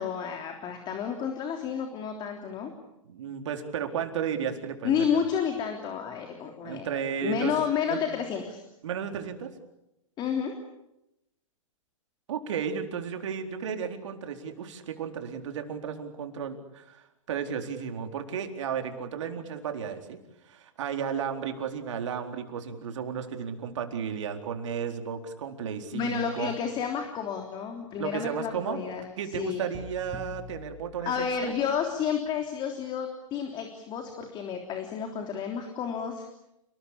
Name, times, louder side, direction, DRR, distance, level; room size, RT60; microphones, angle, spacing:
voice 1, 0.0-2.7 4.8-6.9 7.2-8.6 10.2-10.5 25.9-29.1 29.3-29.6 31.0-36.3, left 7 dB, 25° left, 4 dB, 3.4 m, -30 dB
voice 2, 3.0-5.2 6.6-7.5 7.9-8.0 8.8-9.5 12.3-20.2 20.5-26.5 28.0-28.8 29.2-31.5, right 7 dB, 60° right, 5 dB, 4.2 m, -33 dB
sound 1, 29.7-31.9, left 1 dB, 20° right, 7.9 m, -45 dB
29.5 x 20.5 x 8.6 m, 0.90 s
hypercardioid pair, 125°, 17 cm